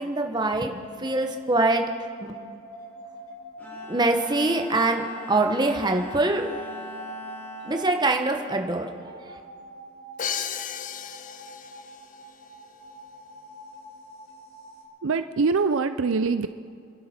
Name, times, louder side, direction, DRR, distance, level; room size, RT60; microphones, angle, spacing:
voice 1, 0.0-1.8 2.2-2.3 3.8-6.6 7.6-9.4, right 2 dB, 20° right, 4 dB, 1.1 m, -24 dB
sound 1, 0.7-14.8, equal, 70° left, 3.2 m, -44 dB
Bowed string instrument, 3.6-9.1, equal, 10° left, 4.6 m, -43 dB
Crash cymbal, 10.2-12.0, left 8 dB, 35° left, 0.5 m, -33 dB
voice 2, 15.0-16.5, right 4 dB, 60° right, 10 dB, 0.5 m, -23 dB
29.0 x 11.5 x 4.4 m, 2.3 s
head